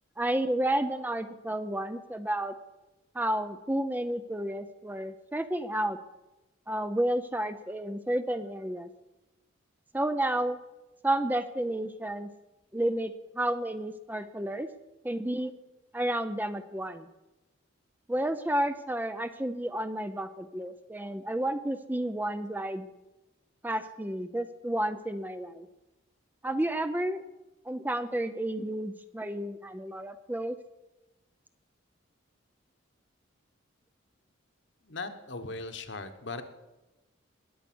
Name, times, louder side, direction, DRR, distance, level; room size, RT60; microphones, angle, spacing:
voice 1, 0.2-2.5 3.1-6.0 6.7-8.9 9.9-10.6 11.0-12.3 12.7-14.7 15.0-15.5 15.9-17.1 18.1-22.9 23.6-25.7 26.4-27.2 27.6-30.6, right 1 dB, 10° right, 10 dB, 0.5 m, -31 dB
voice 2, 34.8-36.4, left 3 dB, 60° left, 7 dB, 1.3 m, -38 dB
20.5 x 8.2 x 6.2 m, 1.0 s
head